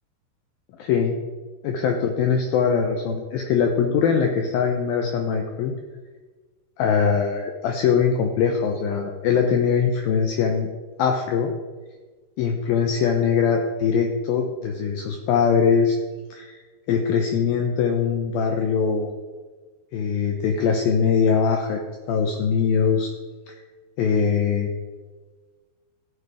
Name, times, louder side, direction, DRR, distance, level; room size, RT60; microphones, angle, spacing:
voice 1, 0.8-1.2 1.6-5.7 6.8-10.7 11.0-11.5 12.4-16.0 16.3-16.6 16.9-19.1 19.9-21.8 22.1-23.1 24.0-24.7, left 6 dB, 75° left, 2 dB, 2.4 m, -22 dB
15.5 x 7.3 x 4.9 m, 1.4 s
omnidirectional pair, 4.9 m